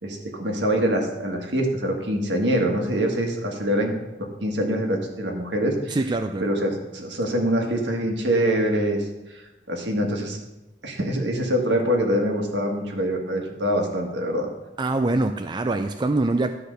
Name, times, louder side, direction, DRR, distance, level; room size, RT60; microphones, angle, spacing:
voice 1, 0.0-4.0 4.4-6.0 6.4-10.4 10.8-14.5, equal, 75° right, 2 dB, 1.7 m, -24 dB
voice 2, 5.9-6.4 14.8-16.5, right 2 dB, 25° right, 7 dB, 0.4 m, -24 dB
11.5 x 4.8 x 6.5 m, 1.0 s
head